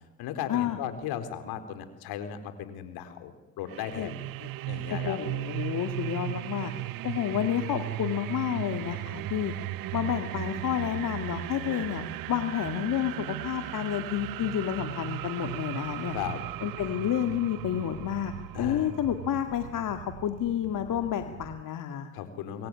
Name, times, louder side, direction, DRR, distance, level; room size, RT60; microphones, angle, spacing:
voice 1, 0.2-4.2 4.7-5.2 16.1-16.4 16.9-17.0 18.5-18.9 22.1-22.7, left 9 dB, 70° left, 9 dB, 4.1 m, -36 dB
sound 1, 3.7-21.6, right 16 dB, 60° right, 0.9 m, -37 dB
voice 2, 4.9-6.7 7.0-9.5 9.9-16.2 16.6-22.1, left 10 dB, 55° left, 6 dB, 2.2 m, -30 dB
26.5 x 23.0 x 9.8 m, 1.0 s
supercardioid pair, 75°, 39 cm